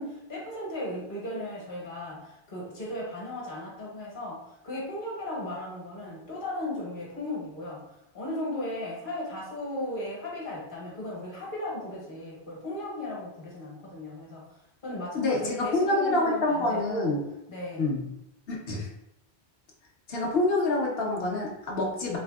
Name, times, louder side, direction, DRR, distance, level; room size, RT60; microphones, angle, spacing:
voice 1, 0.0-14.5 14.8-17.2 17.5-18.0, left 1 dB, 55° left, -4 dB, 1.2 m, -36 dB
voice 2, 15.1-17.2 17.8-18.1 18.5-18.9 20.1-22.2, left 2 dB, 70° left, -3 dB, 1.0 m, -27 dB
3.5 x 3.2 x 2.3 m, 0.84 s
omnidirectional pair, 1.1 m